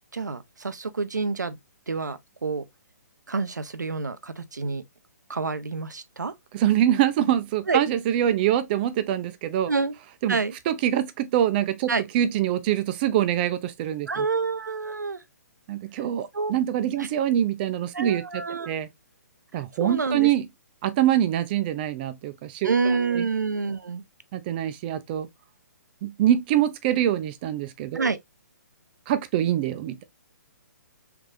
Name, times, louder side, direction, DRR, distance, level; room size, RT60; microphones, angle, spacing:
voice 1, 0.1-1.6 1.9-2.6 3.3-4.8 5.3-6.3 7.7-7.8 9.7-10.0 10.3-10.5 11.9-12.0 14.1-15.2 16.3-16.5 17.0-17.1 17.9-18.7 19.8-20.3 22.6-24.0 27.9-28.2, right 4 dB, 85° right, 0.6 m, -27 dB
voice 2, 6.5-9.7 10.2-10.4 10.7-14.3 15.7-18.9 19.5-20.5 20.8-23.3 24.3-25.3 26.0-28.1 29.1-30.0, right 11 dB, 35° right, 0.6 m, -24 dB
3.4 x 3.4 x 2.4 m
figure-of-eight pair, 135°, 9 cm